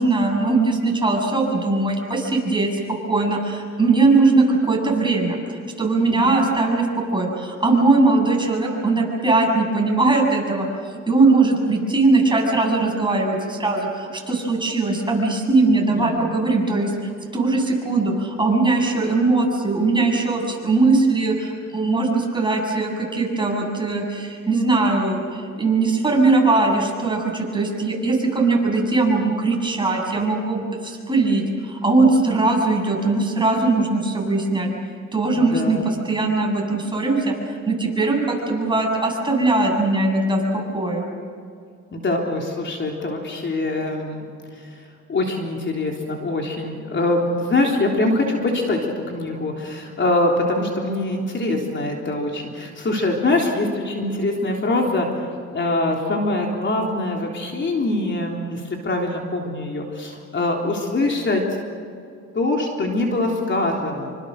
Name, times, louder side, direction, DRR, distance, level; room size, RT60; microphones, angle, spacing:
voice 1, 0.0-5.4 5.8-10.7 11.1-16.9 17.3-34.7 35.1-37.3 37.7-41.0, right 3 dB, 15° right, 0 dB, 7.6 m, -20 dB
voice 2, 35.4-35.9 41.9-44.3 44.5-44.8 45.1-61.6 62.3-64.1, left 2 dB, 40° left, 0 dB, 3.6 m, -23 dB
27.5 x 25.0 x 6.6 m, 2.3 s
cardioid pair, 90°, 30 cm